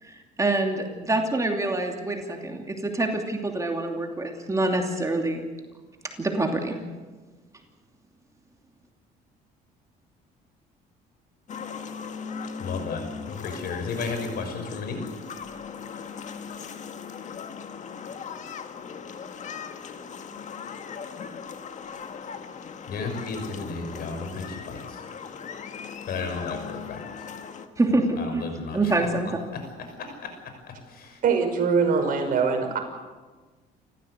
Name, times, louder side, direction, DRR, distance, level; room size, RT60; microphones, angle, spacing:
voice 1, 0.0-5.5 6.2-6.8 27.8-28.4 28.7-29.4, right 2 dB, 20° right, 3 dB, 2.8 m, -26 dB
sound 1, 11.5-27.7, left 6 dB, 45° left, 1.8 m, -39 dB
voice 2, 12.6-15.0 22.9-25.0 26.1-27.0 28.2-28.9 29.2-29.6 30.0-31.2, left 4 dB, 65° left, 6 dB, 6.3 m, -34 dB
voice 3, 31.2-32.8, right 5 dB, 55° right, 3 dB, 6.0 m, -22 dB
29.0 x 15.0 x 8.2 m, 1.3 s
cardioid pair, 110°, 17 cm